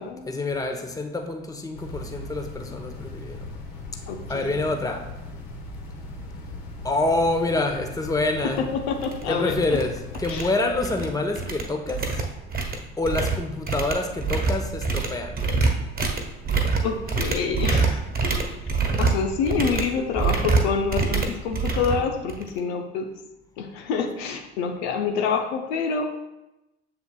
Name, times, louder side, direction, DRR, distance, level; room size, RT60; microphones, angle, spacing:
voice 1, 0.3-3.4 4.3-5.0 6.8-8.6 9.3-12.0 13.0-15.3, left 2 dB, 10° left, 4 dB, 0.9 m, -26 dB
sound 1, 1.7-10.5, left 1 dB, 55° left, 1.4 m, -39 dB
voice 2, 4.1-4.8 8.4-9.6 10.3-10.5 16.8-18.0 19.0-23.1 23.6-26.1, left 5 dB, 70° left, 4 dB, 0.8 m, -27 dB
sound 2, 8.5-8.6 9.0-9.2 9.5-9.8 10.1-11.1 11.4-22.6, right 4 dB, 25° right, 1.3 m, -26 dB
6.9 x 6.9 x 2.3 m, 0.95 s
figure-of-eight pair, 60°, 33 cm